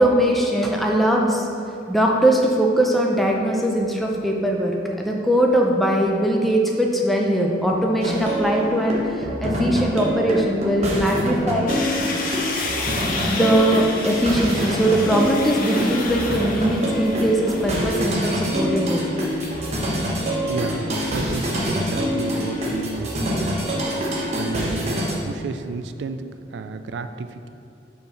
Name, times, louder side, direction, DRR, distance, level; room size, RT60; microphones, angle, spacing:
voice 1, 0.0-1.5 1.9-11.7 13.3-19.0, right 1 dB, ahead, -1 dB, 0.5 m, -20 dB
sound 1, 8.0-25.1, equal, 35° right, 1.0 m, -25 dB
sound 2, 11.7-22.8, left 3 dB, 50° left, 0.7 m, -33 dB
voice 2, 20.5-23.7 24.3-26.3 26.5-27.5, right 4 dB, 70° right, 9 dB, 0.3 m, -32 dB
5.6 x 4.5 x 5.5 m, 2.8 s
head